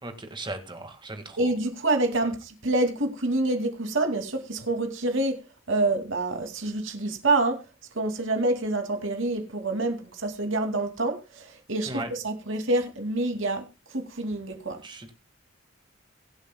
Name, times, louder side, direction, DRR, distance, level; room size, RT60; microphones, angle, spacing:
voice 1, 0.0-1.5 11.9-12.1 14.8-15.1, right 2 dB, 25° right, 1.9 m, -37 dB
voice 2, 1.4-5.4 5.7-7.6 8.0-13.6 13.9-14.8, right 2 dB, 75° right, 2.5 m, -27 dB
23.0 x 8.0 x 2.3 m
head